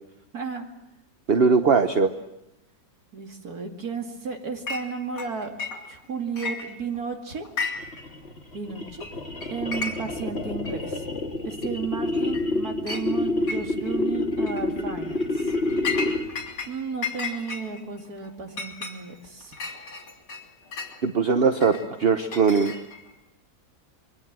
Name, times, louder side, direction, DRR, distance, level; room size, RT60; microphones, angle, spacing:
voice 1, 0.3-0.7 3.1-7.5 8.5-9.1 9.5-11.0 11.4-15.5 16.3-19.5, right 5 dB, 55° right, 4 dB, 2.9 m, -33 dB
voice 2, 1.3-2.1 21.0-22.7, right 5 dB, 40° right, 8 dB, 1.0 m, -20 dB
Chink clink, 4.7-4.9 5.2-6.1 6.4-7.1 7.4-8.0 8.3-8.4 9.0-9.1 9.4-10.2 10.7-10.8 11.6-11.7 12.1-12.5 12.9-13.1 13.5-14.0 14.4-14.6 15.2-16.7 17.0-21.0 21.6-23.1, left 4 dB, 65° left, 3.6 m, -34 dB
sound 1, 7.8-16.5, left 2 dB, 35° left, 2.3 m, -28 dB
26.0 x 23.0 x 7.5 m, 0.84 s
omnidirectional pair, 1.9 m